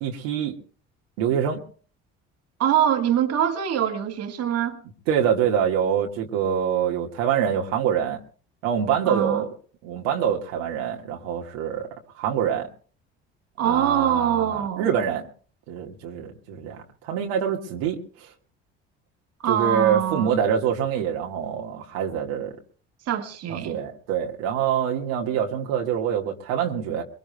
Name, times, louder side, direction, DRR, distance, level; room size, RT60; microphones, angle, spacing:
voice 1, 0.0-0.6 1.2-1.6 5.1-8.2 8.6-9.5 9.8-11.9 12.2-12.7 13.6-15.3 15.7-18.0 19.4-22.5 23.5-27.0, right 8 dB, 80° right, 1.7 m, -25 dB
voice 2, 2.6-4.8 9.1-9.4 13.6-14.9 19.4-20.4 23.1-23.8, right 9 dB, 60° right, 1.7 m, -24 dB
23.0 x 22.0 x 2.2 m
hypercardioid pair, 65°, 29 cm